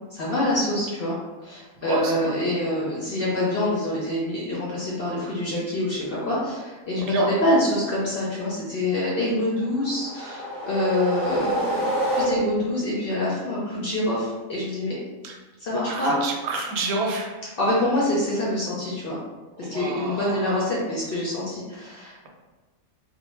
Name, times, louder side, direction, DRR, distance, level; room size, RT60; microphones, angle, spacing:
voice 1, 0.1-1.1 1.4-15.0 15.6-16.2 17.6-19.2 19.6-22.1, left 1 dB, 60° left, -6 dB, 0.6 m, -26 dB
voice 2, 1.8-2.4 7.0-7.3 15.2-15.3 15.9-17.3 19.6-20.7, right 2 dB, 90° right, 1 dB, 1.1 m, -28 dB
sound 1, 9.7-12.8, right 1 dB, 10° right, 0.8 m, -27 dB
2.5 x 2.1 x 3.0 m, 1.2 s
omnidirectional pair, 1.5 m